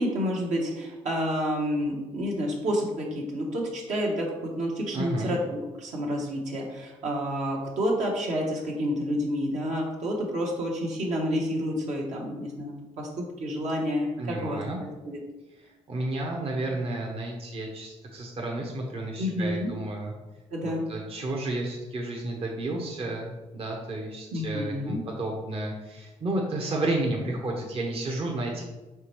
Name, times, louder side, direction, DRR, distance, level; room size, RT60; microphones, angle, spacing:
voice 1, 0.0-14.6 15.1-15.2 19.2-19.7 20.5-20.8 24.3-25.0, equal, 75° right, -2 dB, 1.0 m, -29 dB
voice 2, 4.9-5.3 14.2-14.8 15.9-20.1 20.6-28.6, right 2 dB, 50° right, 0 dB, 0.8 m, -32 dB
4.7 x 3.3 x 3.0 m, 1.1 s
supercardioid pair, 60°, 12 cm